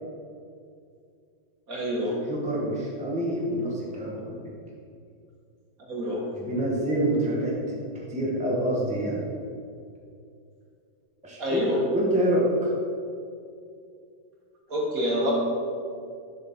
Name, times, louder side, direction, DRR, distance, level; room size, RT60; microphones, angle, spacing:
voice 1, 1.7-2.2 5.8-6.2 11.4-11.8 14.7-15.3, equal, 65° right, -3 dB, 1.9 m, -27 dB
voice 2, 2.2-4.5 6.3-9.2 11.2-11.6 11.9-12.7, right 1 dB, 5° right, -4 dB, 1.1 m, -27 dB
7.0 x 4.5 x 5.7 m, 2.4 s
omnidirectional pair, 1.7 m